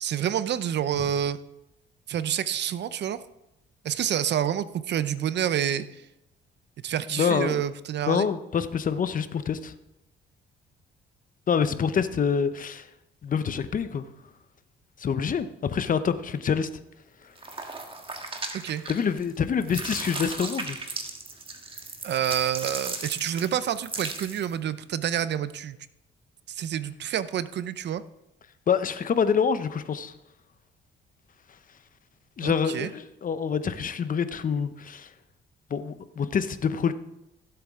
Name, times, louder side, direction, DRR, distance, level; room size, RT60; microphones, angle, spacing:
voice 1, 0.0-1.4 2.1-3.2 3.8-6.0 6.8-8.3 18.5-18.8 22.0-25.8 26.5-28.0 32.4-32.9, right 10 dB, 60° right, 15 dB, 0.6 m, -28 dB
voice 2, 7.1-7.6 8.1-9.7 11.5-12.9 13.2-14.1 15.0-16.7 18.9-20.8 28.7-30.1 32.4-35.1 35.7-36.9, left 6 dB, 45° left, 12 dB, 0.8 m, -26 dB
sound 1, 17.4-19.3 19.6-24.5, right 3 dB, 25° right, 1.6 m, -36 dB
15.0 x 7.9 x 3.7 m, 0.89 s
cardioid pair, 90°, 20 cm